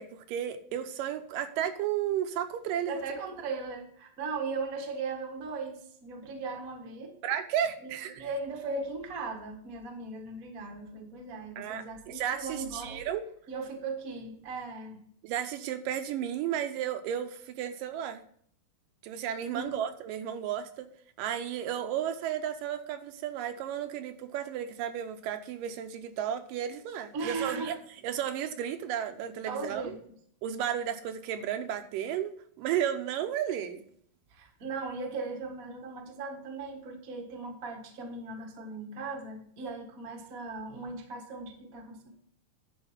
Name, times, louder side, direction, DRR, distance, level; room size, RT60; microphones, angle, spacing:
voice 1, 0.0-3.2 7.2-8.3 11.6-13.2 15.2-18.2 19.0-20.9 21.2-27.7 28.0-30.0 30.4-32.3 32.6-33.8, right 10 dB, 80° right, 8 dB, 2.4 m, -33 dB
voice 2, 2.9-7.2 7.8-13.0 13.5-15.0 19.5-19.8 27.1-27.8 29.4-29.9 34.3-42.1, right 3 dB, 50° right, 3 dB, 1.1 m, -38 dB
11.0 x 4.8 x 5.7 m, 0.63 s
omnidirectional pair, 3.9 m